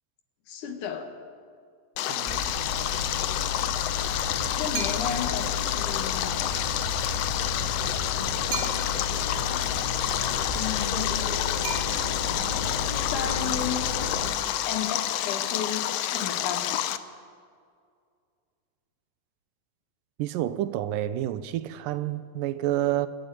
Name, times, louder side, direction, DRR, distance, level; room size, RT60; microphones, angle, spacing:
voice 1, 0.5-1.1 4.5-6.4 10.5-11.4 13.1-13.8 14.7-16.9, left 7 dB, 70° left, 3.0 m, -33 dB
Stream, 2.0-17.0, left 11 dB, 90° left, 1.4 m, -29 dB
voice 2, 2.1-2.4 20.2-23.1, right 13 dB, 90° right, 2.4 m, -29 dB
sound 1, 2.3-14.3, left 4 dB, 15° left, 2.0 m, -33 dB
sound 2, 4.7-5.4 8.5-9.2 11.6-12.4, right 7 dB, 65° right, 2.6 m, -36 dB
27.0 x 11.5 x 9.3 m
omnidirectional pair, 3.8 m